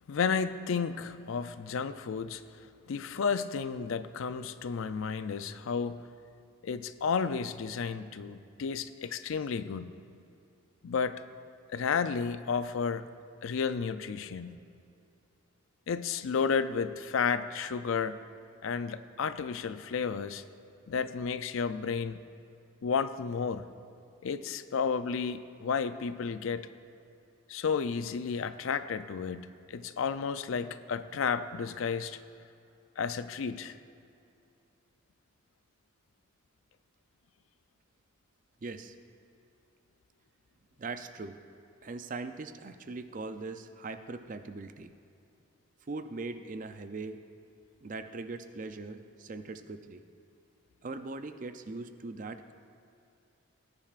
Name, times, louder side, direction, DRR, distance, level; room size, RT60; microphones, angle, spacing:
voice 1, 0.1-2.4 2.9-6.0 6.6-9.9 10.8-11.2 11.7-13.1 13.4-14.6 15.9-18.2 18.6-20.4 20.9-22.2 22.8-23.7 24.2-26.7 27.5-32.2 33.0-33.8, left 6 dB, 70° left, 12 dB, 0.4 m, -32 dB
voice 2, 38.6-38.9 40.8-41.4 41.8-44.9 45.9-47.2 47.8-50.0 50.8-52.5, right 3 dB, 40° right, 9 dB, 0.4 m, -40 dB
17.5 x 10.5 x 2.5 m, 2.6 s
head